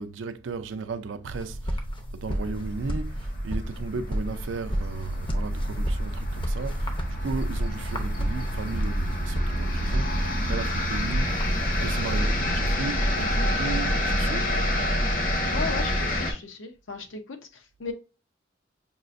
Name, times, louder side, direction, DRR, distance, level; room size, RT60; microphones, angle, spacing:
voice 1, 0.0-1.9 2.1-11.5 11.8-14.7, right 4 dB, 70° right, 0.4 m, -35 dB
sound 1, 1.3-12.2, equal, 25° left, 0.6 m, -32 dB
sound 2, 2.3-16.3, equal, 45° left, 0.9 m, -28 dB
voice 2, 15.5-17.9, left 4 dB, 80° left, 0.7 m, -36 dB
5.4 x 2.5 x 2.5 m
head